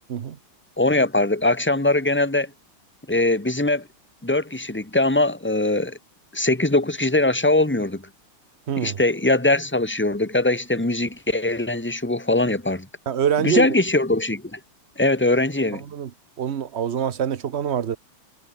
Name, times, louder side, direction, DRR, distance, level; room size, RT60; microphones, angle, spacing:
voice 1, 0.8-2.5 3.1-3.9 4.2-6.0 6.3-8.0 8.8-12.9 13.4-14.6 15.0-15.8, left 2 dB, 5° left, 1.5 m, -21 dB
voice 2, 8.7-9.0 13.1-13.7 15.8-16.1 16.4-18.0, right 8 dB, 50° right, 0.7 m, -25 dB
omnidirectional pair, 2.3 m